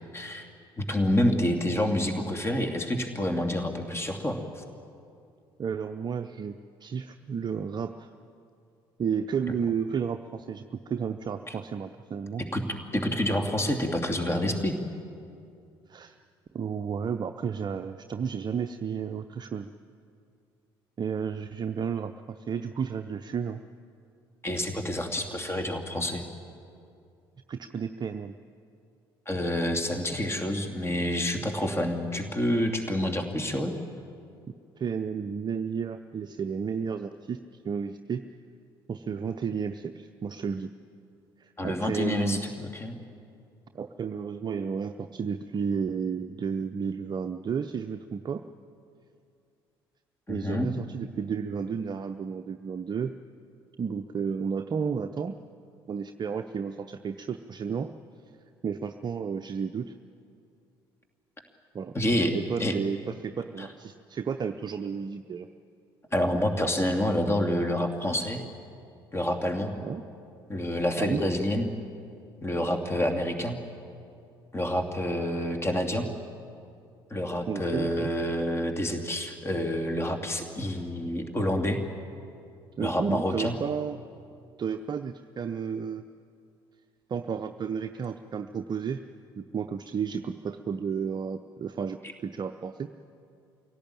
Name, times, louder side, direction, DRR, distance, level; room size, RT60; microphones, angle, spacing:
voice 1, 0.1-0.5 0.8-4.6 12.4-12.7 12.9-14.8 24.4-26.2 29.3-33.7 41.6-43.0 50.3-50.7 61.9-62.8 63.6-63.7 66.1-68.4 69.1-69.7 70.5-71.7 72.4-73.6 74.5-76.1 77.1-81.8 82.8-83.5, left 1 dB, 20° left, 5 dB, 2.7 m, -28 dB
voice 2, 5.6-6.5 6.8-8.1 9.0-12.4 15.9-16.2 16.5-19.7 21.0-23.6 27.5-28.3 34.8-37.4 37.6-38.2 38.9-40.7 41.4-42.4 43.7-48.4 50.3-53.1 53.8-55.4 55.9-57.9 58.6-59.9 61.7-61.9 62.3-65.5 69.8-70.0 71.0-71.2 77.5-78.1 82.8-84.0 84.6-86.0 87.1-89.0 89.4-92.9, right 6 dB, 35° right, 8 dB, 0.7 m, -32 dB
24.5 x 17.0 x 8.9 m, 2.5 s
figure-of-eight pair, 50°, 13 cm